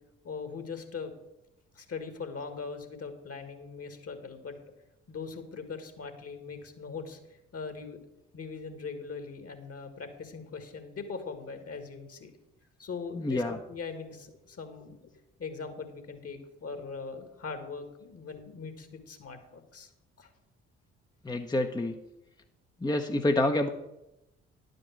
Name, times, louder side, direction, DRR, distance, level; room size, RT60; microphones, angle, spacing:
voice 1, 0.2-1.1 1.7-4.6 5.1-7.2 7.5-8.0 8.3-12.3 12.8-15.1 15.4-19.9 20.2-20.3, left 5 dB, 45° left, 8 dB, 1.9 m, -40 dB
voice 2, 13.1-13.6 21.2-22.0 22.8-23.7, left 1 dB, 10° left, 4 dB, 0.8 m, -27 dB
11.0 x 5.2 x 7.3 m, 0.90 s
hypercardioid pair, 45°, 34 cm